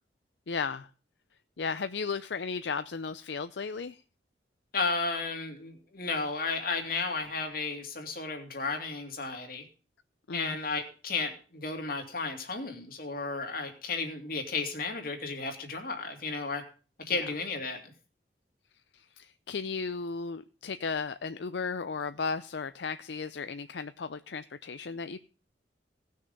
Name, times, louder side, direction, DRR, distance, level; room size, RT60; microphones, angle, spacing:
voice 1, 0.5-0.9 1.6-4.0 10.3-10.6 17.1-17.3 18.9-25.2, left 5 dB, 75° left, 0.6 m, -35 dB
voice 2, 4.7-9.6 10.3-16.6 17.1-17.9, left 4 dB, 55° left, 2.5 m, -33 dB
18.0 x 6.6 x 5.3 m
head